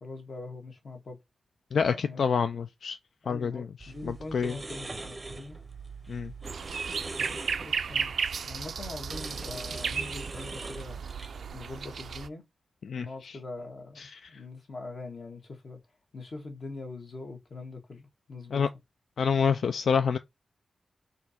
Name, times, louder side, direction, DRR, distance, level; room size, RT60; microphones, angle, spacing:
voice 1, 0.0-1.2 1.8-2.5 3.2-5.7 7.6-8.1 8.4-11.0 11.5-12.4 12.9-14.0 14.3-15.8 16.1-18.6, left 3 dB, 45° left, 1.3 m, -42 dB
voice 2, 1.7-3.0 3.3-3.6 4.1-4.6 6.1-6.3 12.8-13.1 14.0-14.1 18.5-18.7 19.2-20.2, left 6 dB, 75° left, 0.3 m, -27 dB
sound 1, 3.8-11.5, right 3 dB, 20° right, 0.6 m, -42 dB
sound 2, 6.4-12.3, right 6 dB, 75° right, 0.3 m, -34 dB
4.3 x 2.6 x 4.2 m
wide cardioid pair, 155°, 0 cm